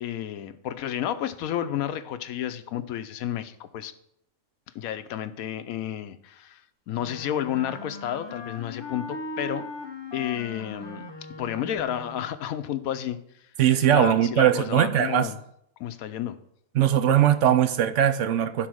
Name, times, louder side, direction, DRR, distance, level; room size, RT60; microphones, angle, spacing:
voice 1, 0.0-3.9 4.7-9.7 10.1-11.0 11.4-13.2 13.9-15.4 15.8-16.4, left 10 dB, 85° left, 1.1 m, -31 dB
Wind instrument woodwind instrument, 7.0-12.4, left 2 dB, 25° left, 0.8 m, -39 dB
voice 2, 13.6-15.3 16.7-18.7, right 10 dB, 70° right, 0.9 m, -20 dB
11.5 x 4.1 x 6.2 m
omnidirectional pair, 1.4 m